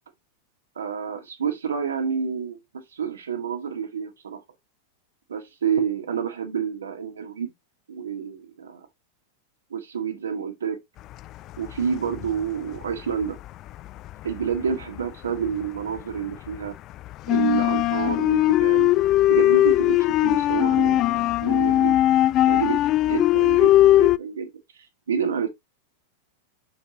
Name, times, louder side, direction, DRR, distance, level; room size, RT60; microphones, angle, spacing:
voice 1, 0.8-4.4 5.3-7.5 7.9-8.9 9.7-10.8 11.6-13.4 14.2-16.7 17.3-18.9 19.3-22.0 22.4-22.8 23.0-24.5 25.1-25.5, right 7 dB, 65° right, 1.8 m, -29 dB
sound 1, 11.5-12.4 12.7-15.7 16.0-24.2, left 14 dB, 35° left, 0.3 m, -20 dB
6.6 x 6.4 x 2.8 m
figure-of-eight pair, 90°, 0 cm